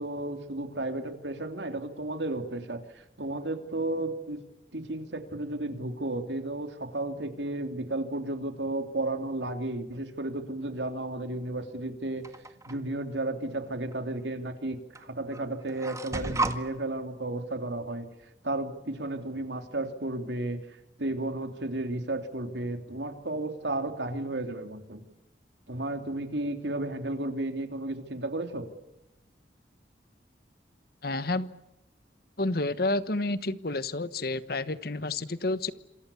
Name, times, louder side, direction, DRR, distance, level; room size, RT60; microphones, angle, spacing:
voice 1, 0.0-4.4 4.7-12.2 12.7-18.1 18.4-25.0 25.7-28.6, right 2 dB, 80° right, 6 dB, 3.2 m, -33 dB
sound 1, 12.2-12.8 13.9-14.0 14.9-15.1 15.3-16.6, right 2 dB, 20° right, 1.7 m, -32 dB
voice 2, 31.0-31.5 32.4-35.7, left 2 dB, 60° left, 14 dB, 1.2 m, -30 dB
28.0 x 27.0 x 7.1 m, 0.92 s
head